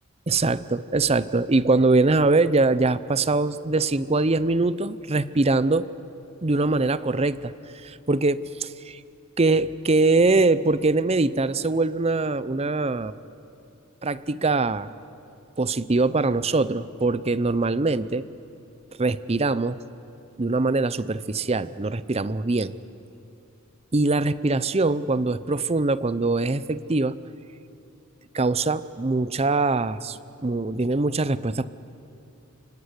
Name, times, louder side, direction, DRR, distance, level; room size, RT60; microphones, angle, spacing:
voice 1, 0.3-5.9 6.4-7.5 7.8-9.0 9.4-13.1 14.0-14.9 15.6-18.2 19.0-19.8 20.4-22.7 23.9-27.2 28.3-31.7, right 3 dB, 30° right, 16 dB, 0.6 m, -23 dB
30.0 x 17.5 x 9.8 m, 2.7 s
head